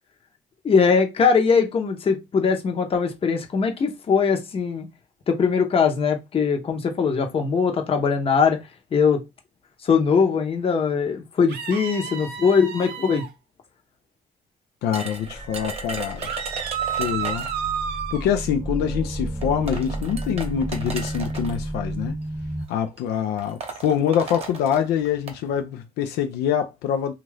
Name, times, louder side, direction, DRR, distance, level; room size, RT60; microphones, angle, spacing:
voice 1, 0.6-4.9 5.3-8.6 8.9-9.2 9.8-13.2, left 5 dB, 35° left, 0.8 m, -21 dB
sound 1, 11.5-13.3 16.2-18.3, right 8 dB, 70° right, 0.6 m, -30 dB
voice 2, 14.8-16.3 17.0-17.5 18.1-22.2 22.7-27.1, left 9 dB, 80° left, 0.5 m, -25 dB
sound 2, 14.9-17.7 18.8-18.9 19.4-21.6 22.5-22.7 23.0-23.1 23.4-25.4, right 4 dB, 35° right, 0.9 m, -36 dB
sound 3, 15.2-22.7, right 1 dB, 5° right, 0.4 m, -32 dB
2.7 x 2.4 x 3.3 m
cardioid pair, 110°, 17 cm